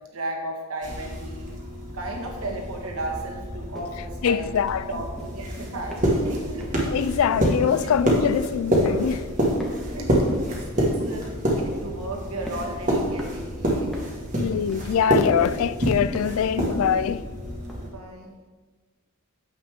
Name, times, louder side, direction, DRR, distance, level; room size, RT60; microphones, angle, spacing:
voice 1, 0.1-1.5 1.9-4.5 4.9-6.7 7.6-8.1 9.8-11.2 11.5-14.1 17.8-18.3, right 1 dB, 75° right, 1.6 m, -35 dB
sound 1, 0.8-17.9, equal, 35° right, 1.6 m, -27 dB
sound 2, 3.0-3.2 3.7-4.0 4.4-4.8 5.1-5.5 5.9-6.3 6.6-6.9 7.4-7.7 8.1-8.5 8.9-9.3 9.6-10.6 11.0-11.4 11.7-12.0 12.5-12.8 13.2-13.5 13.9-14.2 14.7-15.1 15.4-15.7 16.1-16.5 16.9-17.2 17.7-17.8, right 1 dB, ahead, 1.3 m, -40 dB
voice 2, 4.2-4.9 6.8-9.2 14.4-17.2, left 8 dB, 70° left, 0.3 m, -23 dB
9.0 x 7.3 x 3.6 m
head